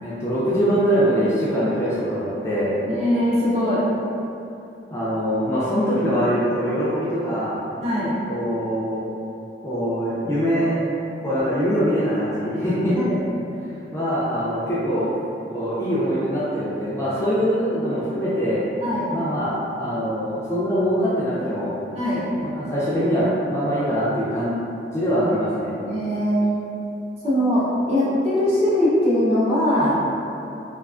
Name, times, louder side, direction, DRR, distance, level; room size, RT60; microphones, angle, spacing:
voice 1, 0.0-2.8 4.9-7.6 8.3-9.1 9.6-10.8 11.2-13.0 13.9-15.1 15.5-18.6 19.1-21.7 22.4-24.5 24.9-25.8, equal, 15° left, -10 dB, 0.4 m, -23 dB
voice 2, 2.9-3.9 7.8-8.1 12.9-13.2 18.8-19.1 21.9-22.3 25.8-26.6 27.2-30.0, equal, 40° right, -9 dB, 0.6 m, -21 dB
2.4 x 2.3 x 2.4 m, 2.7 s
head